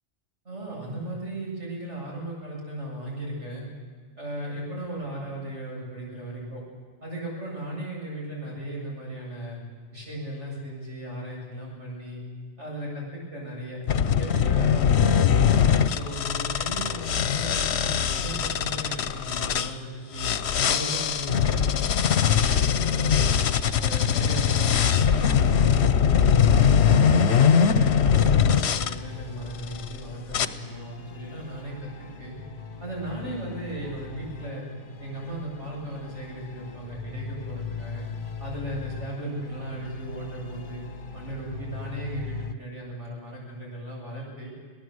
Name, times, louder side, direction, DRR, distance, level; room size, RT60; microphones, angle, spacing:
voice 1, 0.4-3.6 4.2-6.6 7.0-9.6 9.9-12.2 12.6-13.8 14.1-15.6 15.9-20.3 20.6-23.5 23.8-26.9 27.2-32.3 32.8-34.6 35.0-38.0 38.4-40.8 41.1-44.5, right 1 dB, 80° right, -3 dB, 7.9 m, -36 dB
sound 1, 13.9-19.7 20.2-28.9 29.6-29.9 30.3-30.5, left 7 dB, 70° left, 1.1 m, -21 dB
sound 2, 25.7-42.5, left 4 dB, 50° left, 1.4 m, -40 dB
26.0 x 17.5 x 8.0 m, 1.5 s
omnidirectional pair, 1.2 m